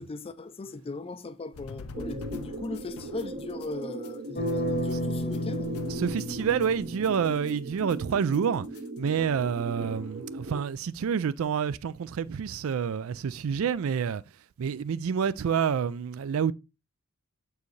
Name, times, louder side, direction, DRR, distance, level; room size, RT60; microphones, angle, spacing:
voice 1, 0.0-5.7, left 3 dB, 25° left, 0.4 m, -38 dB
sound 1, 1.5-10.7, left 4 dB, 85° left, 0.6 m, -47 dB
sound 2, 1.9-10.6, right 1 dB, 45° right, 0.8 m, -39 dB
sound 3, 4.4-7.3, equal, 45° left, 1.0 m, -31 dB
voice 2, 5.9-8.7 9.0-14.2 14.6-16.5, right 7 dB, 70° right, 0.4 m, -28 dB
7.0 x 4.6 x 3.1 m
head